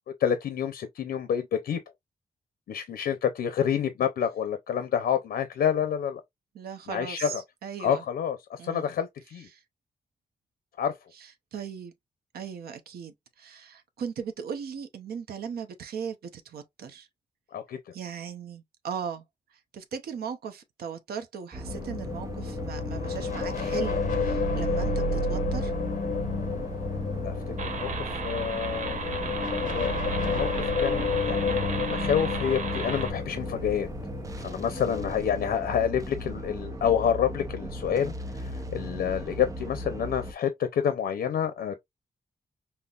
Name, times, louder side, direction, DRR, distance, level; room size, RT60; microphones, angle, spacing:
voice 1, 0.2-1.8 2.7-6.2 6.9-7.4 7.8-9.5 10.8-10.9 17.5-17.8 27.2-29.0 29.5-33.9 34.4-41.8, left 8 dB, 85° left, 0.6 m, -28 dB
voice 2, 6.5-7.4 7.6-8.0 8.6-8.9 9.5-9.6 11.5-11.9 12.3-17.1 17.9-19.2 19.7-25.7, right 7 dB, 90° right, 0.7 m, -38 dB
sound 1, 21.5-40.3, equal, 20° right, 0.6 m, -37 dB
sound 2, 21.7-35.1, left 4 dB, 55° left, 0.9 m, -31 dB
sound 3, 27.6-33.1, right 5 dB, 55° right, 1.0 m, -35 dB
5.5 x 2.0 x 2.4 m
wide cardioid pair, 175°, 15 cm